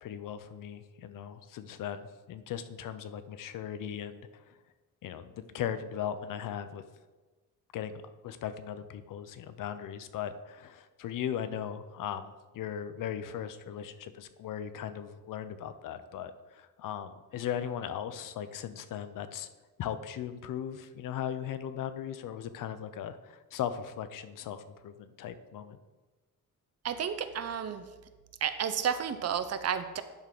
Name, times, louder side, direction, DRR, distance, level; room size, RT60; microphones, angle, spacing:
voice 1, 0.0-4.6 5.0-6.8 7.7-19.5 19.8-25.8, left 9 dB, 70° left, 11 dB, 0.7 m, -38 dB
voice 2, 26.8-27.9 28.4-30.0, right 8 dB, 45° right, 10 dB, 0.7 m, -31 dB
10.5 x 3.8 x 6.0 m, 1.2 s
cardioid pair, 130°, 34 cm